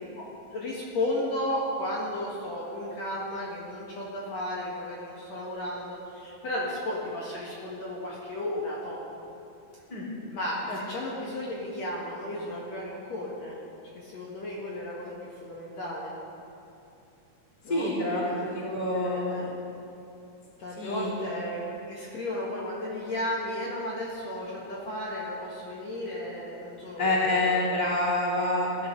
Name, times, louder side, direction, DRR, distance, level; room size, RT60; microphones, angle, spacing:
voice 1, 0.5-9.0 10.3-13.6 13.9-16.2 17.6-19.5 20.6-27.6, left 1 dB, 55° left, -5 dB, 2.5 m, -34 dB
voice 2, 17.7-19.5 20.8-21.1 27.0-28.9, left 2 dB, 15° left, -6 dB, 2.5 m, -27 dB
19.0 x 11.5 x 3.8 m, 2.7 s
omnidirectional pair, 3.9 m